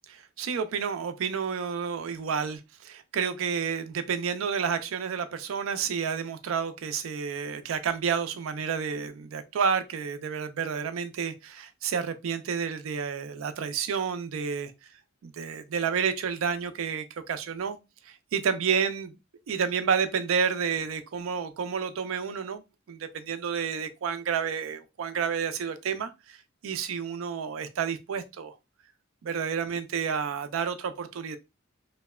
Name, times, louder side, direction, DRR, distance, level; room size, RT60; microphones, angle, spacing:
voice 1, 0.1-14.7 15.2-17.8 18.1-19.1 19.5-22.6 22.9-26.4 26.6-28.6 29.2-31.4, right 6 dB, 85° right, 0.4 m, -30 dB
2.7 x 2.1 x 2.2 m
head